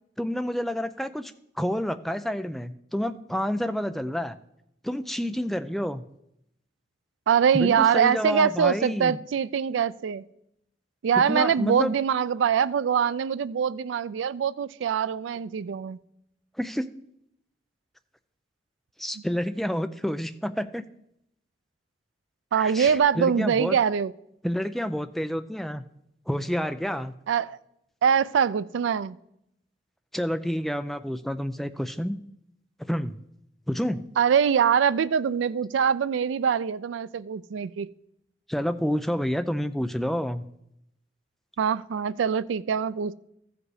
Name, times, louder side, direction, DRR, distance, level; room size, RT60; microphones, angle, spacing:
voice 1, 0.2-1.3 1.6-4.4 4.8-6.0 7.5-9.2 11.3-11.9 16.6-16.9 19.0-20.9 22.5-23.8 24.4-25.8 26.3-27.1 30.1-32.2 32.9-33.1 33.7-34.0 38.5-40.5, equal, ahead, 10 dB, 0.3 m, -29 dB
voice 2, 7.3-10.2 11.0-16.0 22.5-24.1 27.3-27.6 28.0-29.2 34.2-37.9 41.6-43.1, right 7 dB, 90° right, 17 dB, 0.3 m, -23 dB
14.0 x 5.1 x 4.8 m, 0.79 s
head